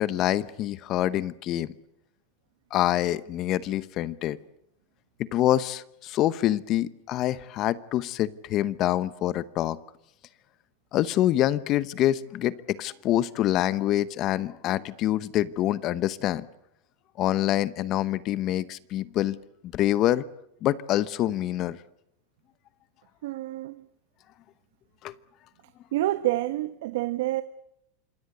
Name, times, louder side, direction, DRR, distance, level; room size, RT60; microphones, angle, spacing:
voice 1, 0.0-1.7 2.7-4.4 5.3-9.8 10.9-16.5 17.2-19.4 19.7-20.2 20.6-21.8 25.0-25.1, left 13 dB, 35° left, 0.9 m, -26 dB
voice 2, 23.2-23.9 25.9-27.4, right 16 dB, 70° right, 1.2 m, -28 dB
27.0 x 21.0 x 8.0 m
supercardioid pair, 155°, 0 cm